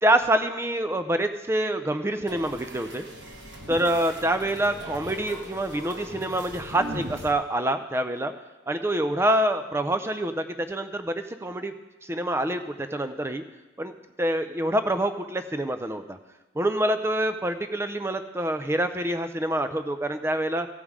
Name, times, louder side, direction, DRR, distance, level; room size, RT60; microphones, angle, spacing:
voice 1, 0.0-3.1 3.7-8.3 8.7-11.7 12.0-13.4 13.8-13.9 14.2-16.2 16.6-20.7, right 1 dB, 15° right, 9 dB, 0.4 m, -26 dB
sound 1, 2.3-7.3, equal, 65° right, 1.3 m, -40 dB
15.0 x 5.4 x 4.8 m, 1.1 s
head